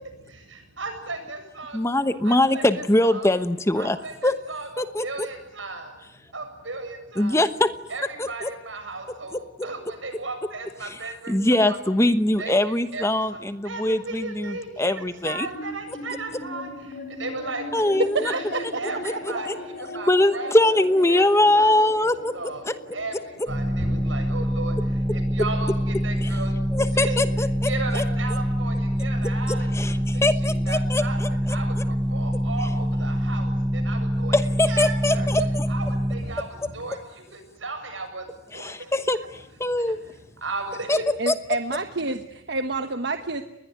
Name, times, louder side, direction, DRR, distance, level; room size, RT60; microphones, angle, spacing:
voice 1, 0.8-1.8 2.2-2.6 3.0-3.3 3.8-4.7 5.0-5.9 6.3-7.4 7.9-11.8 12.4-12.6 12.9-13.0 13.7-13.8 14.1-14.9 15.2-16.7 17.2-17.6 18.2-19.5 19.9-20.5 21.1-21.2 21.5-21.7 22.3-22.6 22.9-23.1 23.5-24.7 25.1-25.7 26.0-26.5 26.9-27.2 27.7-28.7 29.0-29.7 30.4-31.2 31.5-31.7 32.1-33.5 33.9-34.4 34.7-35.3 35.7-36.4 36.7-37.0 37.6-38.2 38.5-38.7 40.4-41.0, right 3 dB, 90° right, 6 dB, 7.7 m, -34 dB
voice 2, 1.7-4.0 4.2-4.4 4.8-5.3 7.2-7.7 8.2-8.5 9.3-9.7 10.8-11.0 11.3-15.5 17.7-18.3 19.0-19.6 20.1-22.7 26.2-26.4 26.7-28.0 29.2-31.6 34.3-35.7 38.5-40.0 40.9-41.0 41.3-41.4, left 1 dB, 15° left, 11 dB, 1.1 m, -23 dB
sound 1, 15.5-28.2, left 1 dB, 50° left, 5.7 m, -39 dB
voice 3, 18.0-18.6 19.1-19.4 35.4-35.5 36.2-36.3 41.2-43.4, right 2 dB, 60° right, 7 dB, 1.2 m, -28 dB
sound 2, 23.5-36.2, equal, 15° right, 7.6 m, -25 dB
30.0 x 21.0 x 9.5 m, 0.87 s
head